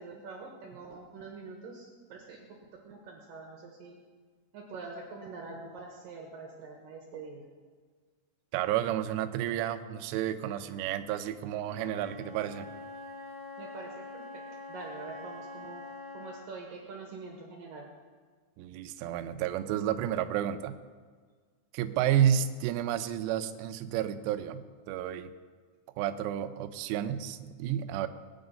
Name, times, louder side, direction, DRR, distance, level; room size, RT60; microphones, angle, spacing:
voice 1, 0.0-2.5 2.8-4.0 4.5-7.4 13.6-14.4 14.7-15.8 16.1-17.9 22.0-22.2, right 4 dB, 60° right, 1 dB, 2.6 m, -45 dB
voice 2, 8.5-12.7 18.6-20.7 21.7-25.3 26.0-28.1, right 10 dB, 80° right, 9 dB, 2.7 m, -31 dB
Wind instrument woodwind instrument, 11.6-16.6, left 2 dB, 25° left, 0.7 m, -44 dB
21.0 x 8.9 x 5.3 m, 1.6 s
omnidirectional pair, 5.5 m